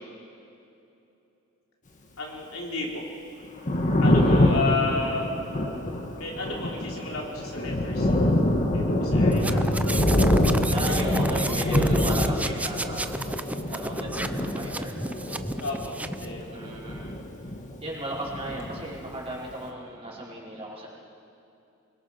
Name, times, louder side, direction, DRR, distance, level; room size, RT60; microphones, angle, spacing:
voice 1, 2.2-3.0 4.0-5.4 6.2-8.2 8.7-9.7 15.6-16.6, left 3 dB, 80° left, -2 dB, 3.7 m, -32 dB
Thunder, 3.4-17.9 18.1-19.4, left 1 dB, 35° left, 1.8 m, -25 dB
voice 2, 4.1-4.6 10.7-13.1 13.7-14.9 16.5-17.1 17.8-20.9, right 1 dB, 30° right, -6 dB, 4.7 m, -35 dB
sound 1, 9.3-16.3, right 2 dB, 5° right, 0.5 m, -33 dB
23.5 x 21.5 x 5.9 m, 2.8 s
head